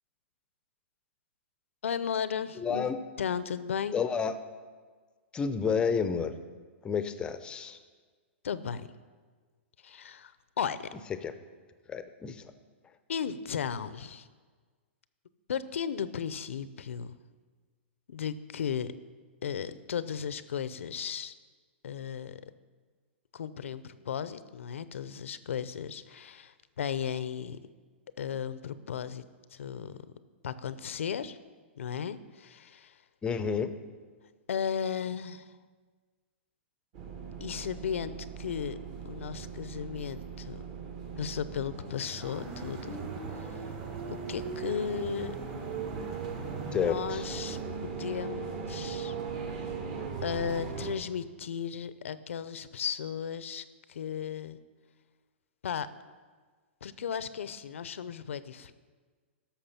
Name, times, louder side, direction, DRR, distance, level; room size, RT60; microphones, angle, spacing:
voice 1, 1.8-2.9 3.2-4.0 8.4-8.9 9.8-10.9 13.1-14.3 15.5-17.1 18.1-18.9 19.4-21.3 21.8-22.5 23.3-27.6 28.2-29.3 29.5-30.0 30.4-31.4 31.8-33.0 34.5-35.5 37.4-38.8 39.0-40.6 41.2-43.0 43.3-43.7 44.0-45.4 46.7-49.2 49.6-49.7 50.2-54.6 55.6-55.9 56.8-58.7, left 7 dB, 85° left, 14 dB, 0.6 m, -35 dB
voice 2, 2.6-3.0 3.9-4.4 5.3-6.3 6.8-7.8 11.2-11.3 11.9-12.4 33.2-33.7 46.7-47.3, left 6 dB, 15° left, 11 dB, 0.6 m, -30 dB
sound 1, 36.9-50.9, right 5 dB, 40° right, 1.4 m, -38 dB
sound 2, 42.2-47.6, right 3 dB, 25° right, 1.3 m, -48 dB
11.5 x 6.6 x 5.7 m, 1.5 s
hypercardioid pair, 145°, 7 cm